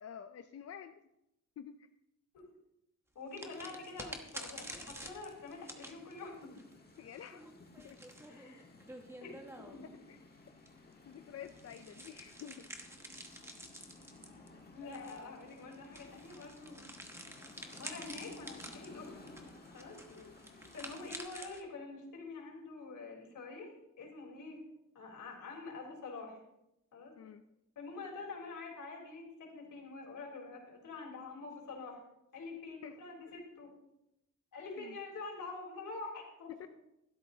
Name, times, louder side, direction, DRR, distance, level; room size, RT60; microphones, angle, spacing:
voice 1, 0.0-1.0 1.6-1.9 7.0-7.5 7.8-8.0 10.1-10.2 11.1-12.7 14.5-15.4 20.1-20.3 27.2-27.4 32.8-33.0 34.8-35.0 36.5-36.7, left 8 dB, 50° left, 8 dB, 0.5 m, -49 dB
voice 2, 3.2-6.6 8.3-8.7 9.2-9.9 14.7-16.9 17.8-19.1 19.7-20.0 20.7-24.6 24.9-26.4 26.9-27.1 27.8-32.0 32.3-33.7 34.5-36.5, left 3 dB, 75° left, -1 dB, 3.8 m, -46 dB
sound 1, 3.3-10.0 10.6-21.6, right 1 dB, 10° right, 1.1 m, -50 dB
sound 2, 3.4-21.2, left 3 dB, 30° left, 1.5 m, -57 dB
15.0 x 12.5 x 2.8 m, 0.86 s
wide cardioid pair, 170°, 32 cm